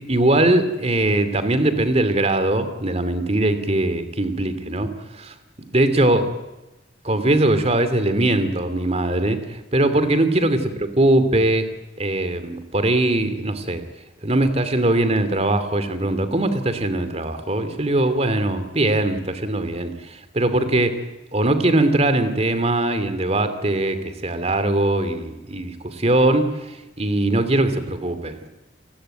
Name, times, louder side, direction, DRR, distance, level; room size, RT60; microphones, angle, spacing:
voice 1, 0.1-4.9 5.2-5.3 5.7-6.3 7.0-11.7 12.0-13.8 14.2-21.0 21.3-28.5, right 1 dB, 40° right, 11 dB, 2.7 m, -21 dB
29.0 x 19.5 x 9.2 m, 1.0 s
head